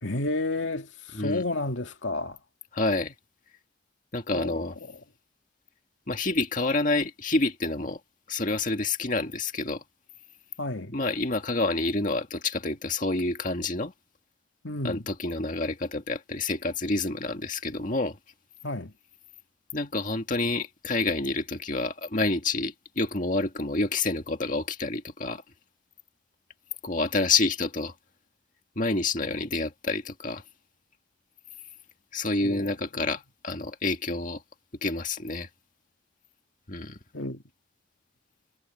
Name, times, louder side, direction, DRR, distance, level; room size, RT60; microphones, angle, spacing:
voice 1, 0.0-2.4 4.3-4.9 10.6-11.0 14.6-15.0 18.6-18.9 32.4-32.7 37.1-37.4, left 2 dB, 80° left, 2.3 m, -31 dB
voice 2, 2.7-3.1 4.1-4.7 6.1-8.0 8.3-9.8 10.9-13.9 14.8-18.2 19.7-25.4 26.8-27.9 28.8-30.4 32.1-34.4 34.8-35.5 36.7-37.0, left 3 dB, 45° left, 1.9 m, -28 dB
head